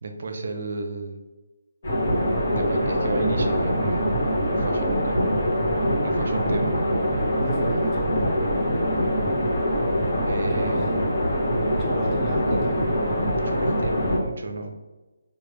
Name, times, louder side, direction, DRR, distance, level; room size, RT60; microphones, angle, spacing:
voice 1, 0.0-1.2 2.5-4.1 4.4-5.2 6.0-6.7 10.2-10.9 13.4-14.8, right 3 dB, 55° right, 5 dB, 0.6 m, -32 dB
sound 1, 1.8-14.2, equal, 50° left, 1.4 m, -23 dB
voice 2, 6.3-6.7 7.4-8.2 10.5-10.9 11.8-12.9, right 1 dB, 15° right, -3 dB, 0.7 m, -35 dB
4.7 x 2.4 x 3.2 m, 1.2 s
figure-of-eight pair, 150°, 0 cm